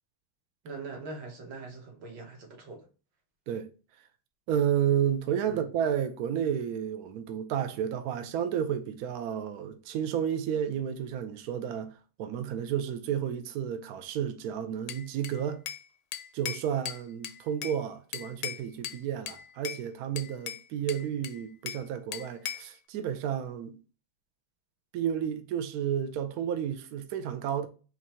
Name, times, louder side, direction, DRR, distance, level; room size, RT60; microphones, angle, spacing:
voice 1, 0.6-2.9 5.4-5.6, right 3 dB, 60° right, 1.8 m, -42 dB
voice 2, 4.5-11.9 12.2-15.6 16.3-23.8 24.9-27.7, right 9 dB, 80° right, 0.8 m, -31 dB
Bell / Glass, 14.9-15.9 16.1-17.8 18.1-19.0 19.3-19.8 20.2-21.9 22.1-22.7, left 10 dB, 75° left, 1.3 m, -38 dB
4.6 x 2.6 x 4.2 m
omnidirectional pair, 2.3 m